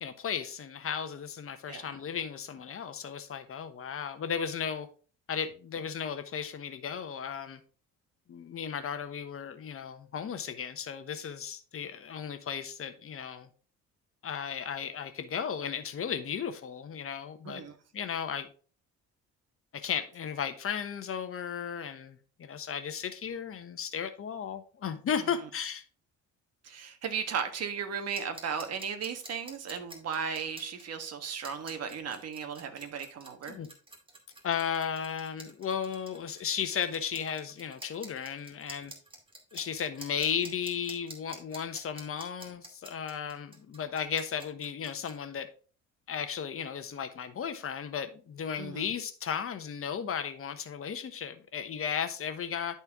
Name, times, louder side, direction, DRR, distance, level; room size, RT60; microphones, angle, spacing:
voice 1, 0.0-4.9 5.3-7.6 8.3-13.5 14.2-17.6 17.9-18.5 19.7-25.8 33.5-33.7 34.4-38.9 39.5-45.5 46.1-52.8, left 7 dB, 45° left, 1.1 m, -35 dB
voice 2, 26.6-33.6 48.6-48.9, right 7 dB, 50° right, 1.6 m, -36 dB
sound 1, 28.1-45.1, right 1 dB, 15° right, 2.0 m, -48 dB
10.5 x 4.4 x 3.6 m
cardioid pair, 90°, 31 cm